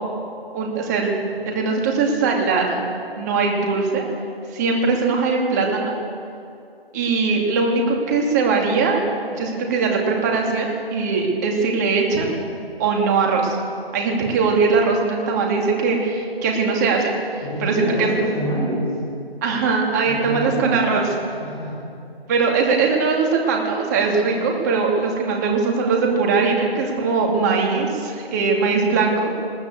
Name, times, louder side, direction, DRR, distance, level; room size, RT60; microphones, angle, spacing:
voice 1, 0.5-1.2 1.5-2.8 3.2-4.0 4.5-5.9 6.9-9.0 9.3-12.3 12.8-13.6 13.9-17.1 17.6-17.7 18.0-18.1 19.4-21.1 22.3-29.3, right 4 dB, 15° right, 0 dB, 2.6 m, -20 dB
voice 2, 17.4-19.0 20.0-21.7, right 1 dB, 5° left, -11 dB, 4.6 m, -27 dB
21.0 x 18.0 x 8.3 m, 2.6 s
hypercardioid pair, 165°, 31 cm